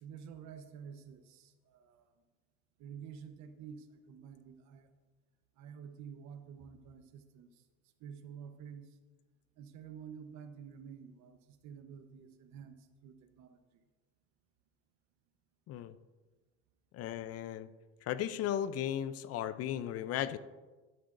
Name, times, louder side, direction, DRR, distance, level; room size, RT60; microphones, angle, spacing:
voice 1, 0.0-2.1 2.8-4.9 5.6-7.5 8.0-8.9 9.6-12.7 13.0-13.6 19.4-19.5, right 7 dB, 60° right, 8 dB, 1.1 m, -50 dB
voice 2, 16.9-17.7 18.0-20.4, left 10 dB, 50° left, 13 dB, 0.5 m, -36 dB
12.0 x 10.0 x 2.6 m, 1.3 s
supercardioid pair, 110°, 32 cm